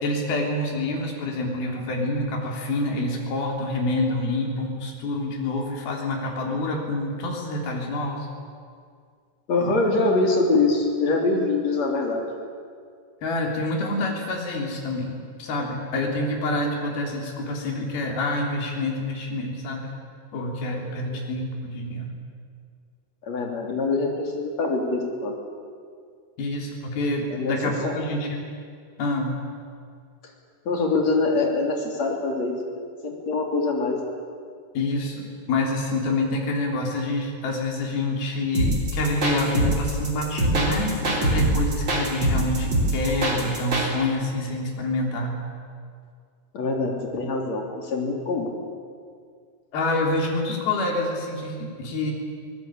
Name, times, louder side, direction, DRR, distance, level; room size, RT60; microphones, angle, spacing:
voice 1, 0.0-8.3 13.2-19.9 20.3-22.1 26.4-28.4 29.0-29.4 34.8-45.4 49.7-52.1, left 2 dB, 85° left, 0 dB, 5.4 m, -27 dB
voice 2, 9.5-12.3 20.9-21.0 23.2-25.3 27.3-27.6 27.8-28.0 30.7-32.5 33.0-34.0 46.5-48.5, left 3 dB, 45° left, 1 dB, 4.3 m, -24 dB
sound 1, 38.5-43.9, right 1 dB, 30° right, 4.1 m, -23 dB
23.5 x 19.5 x 8.8 m, 2.1 s
omnidirectional pair, 4.2 m